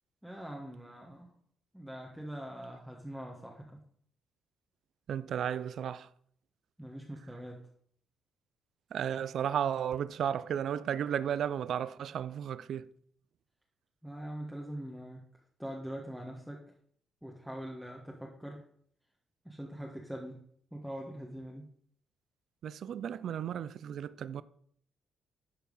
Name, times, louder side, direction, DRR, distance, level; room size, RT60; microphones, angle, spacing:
voice 1, 0.2-1.3 1.7-3.8 6.8-7.7 14.0-15.3 15.6-16.6 17.2-18.6 19.4-20.4 20.7-21.7, right 1 dB, 5° right, 1.5 m, -43 dB
voice 2, 5.1-6.1 8.9-12.9 22.6-24.4, right 9 dB, 65° right, 0.4 m, -34 dB
12.0 x 4.6 x 5.3 m
cardioid pair, 90°, 0 cm